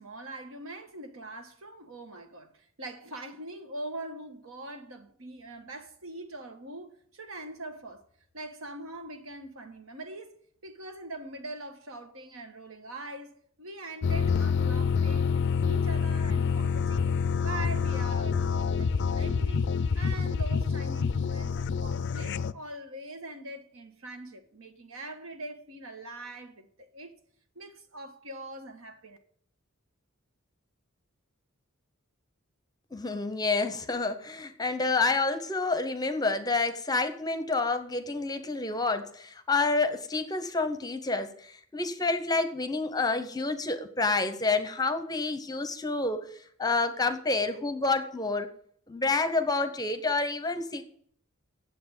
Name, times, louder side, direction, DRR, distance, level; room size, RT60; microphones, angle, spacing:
voice 1, 0.0-8.0 8.3-10.4 10.6-17.1 17.4-27.1 27.5-29.2, right 2 dB, 70° right, 1.4 m, -42 dB
sound 1, 14.0-22.5, left 6 dB, 55° left, 0.4 m, -27 dB
voice 2, 32.9-46.3 46.6-48.5 48.9-50.8, left 3 dB, 20° left, 0.8 m, -28 dB
8.6 x 7.4 x 7.1 m
head